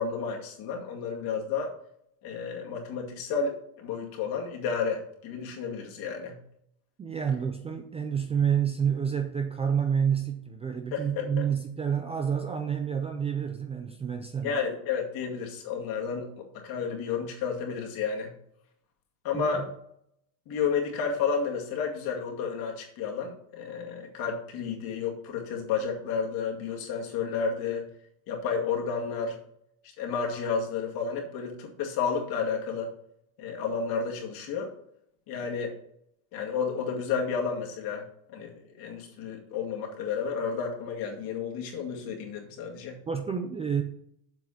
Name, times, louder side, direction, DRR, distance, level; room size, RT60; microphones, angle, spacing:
voice 1, 0.0-1.7 2.2-6.4 10.9-11.3 14.4-18.3 19.2-19.7 20.5-27.8 28.3-29.4 30.0-32.9 33.4-34.7 35.3-35.7 36.3-38.0 38.3-43.0, left 6 dB, 55° left, 0 dB, 2.3 m, -31 dB
voice 2, 7.0-14.5 19.3-19.7 43.1-43.8, right 7 dB, 15° right, 6 dB, 0.4 m, -29 dB
7.7 x 4.9 x 7.2 m, 0.72 s
supercardioid pair, 135°, 43 cm